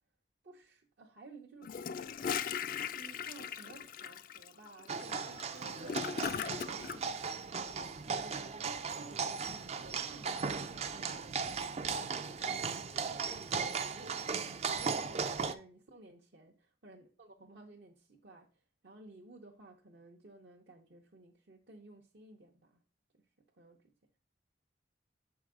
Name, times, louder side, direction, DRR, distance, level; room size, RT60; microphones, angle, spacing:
voice 1, 0.4-1.8 2.9-7.2 8.0-10.9 11.2-14.3 14.7-22.8 23.1-23.9, right 2 dB, 60° right, 0.8 m, -55 dB
Gurgling / Toilet flush, 1.6-7.0, left 7 dB, 50° left, 0.3 m, -38 dB
sound 1, 4.9-15.5, right 5 dB, 35° right, 0.4 m, -37 dB
6.7 x 4.7 x 3.6 m
head